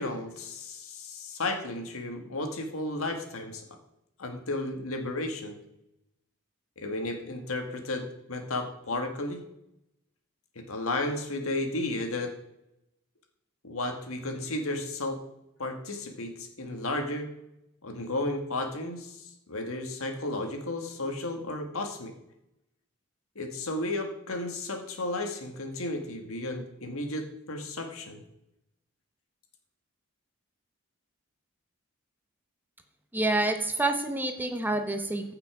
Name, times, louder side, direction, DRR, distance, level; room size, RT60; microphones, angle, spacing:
voice 1, 0.0-3.6 4.2-5.6 6.8-9.4 10.6-12.4 13.6-15.2 15.6-17.3 17.8-22.1 23.4-28.2, left 2 dB, 75° left, 4 dB, 1.9 m, -33 dB
voice 2, 33.1-35.3, right 2 dB, 10° right, 6 dB, 1.0 m, -28 dB
15.0 x 5.9 x 5.0 m, 0.83 s
head